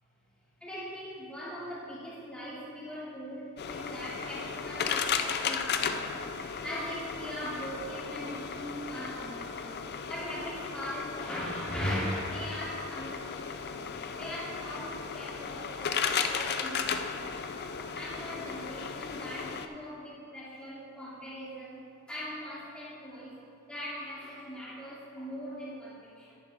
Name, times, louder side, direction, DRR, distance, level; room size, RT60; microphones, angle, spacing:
voice 1, 0.6-6.1 6.6-9.7 10.0-13.8 14.1-17.5 17.9-21.8 22.1-23.4 23.7-26.4, equal, 5° left, -9 dB, 2.8 m, -40 dB
sound 1, 3.6-19.7, left 6 dB, 50° left, 0.5 m, -35 dB
10.5 x 9.7 x 3.5 m, 2.4 s
head